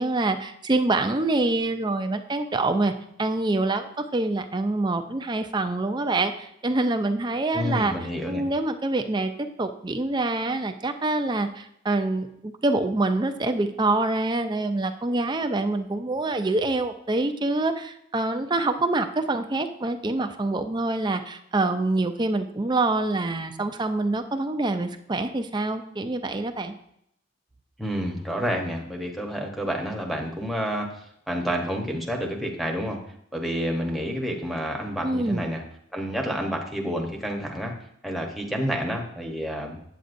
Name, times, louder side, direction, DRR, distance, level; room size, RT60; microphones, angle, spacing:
voice 1, 0.0-2.9 3.2-7.9 8.3-9.3 9.6-26.7 35.0-35.5, right 2 dB, 20° right, 8 dB, 0.5 m, -26 dB
voice 2, 7.5-8.4 27.8-33.0 33.3-35.6 35.9-37.8 38.0-39.8, equal, ahead, -1 dB, 0.9 m, -29 dB
8.2 x 8.0 x 2.6 m, 0.73 s
head